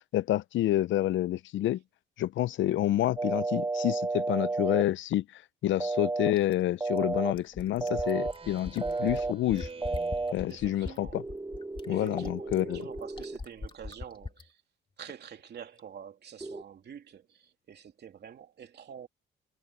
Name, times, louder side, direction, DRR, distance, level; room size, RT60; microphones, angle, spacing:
voice 1, 0.1-1.8 2.2-9.7 10.3-11.1 11.9-12.8, left 14 dB, 75° left, 0.6 m, -28 dB
sound 1, 3.2-4.8 5.8-6.3 6.8-7.3 7.8-8.3 8.8-9.3 9.8-10.3 11.1-13.4 16.4-16.6, right 3 dB, 10° right, 0.7 m, -32 dB
Fill (with liquid), 6.4-14.5 15.8-15.9, left 3 dB, 25° left, 2.4 m, -41 dB
Speech synthesizer, 7.8-11.3, right 4 dB, 30° right, 3.5 m, -47 dB
voice 2, 10.5-11.2 11.9-14.6 15.0-19.1, right 8 dB, 55° right, 3.0 m, -47 dB
cardioid pair, 90°, 20 cm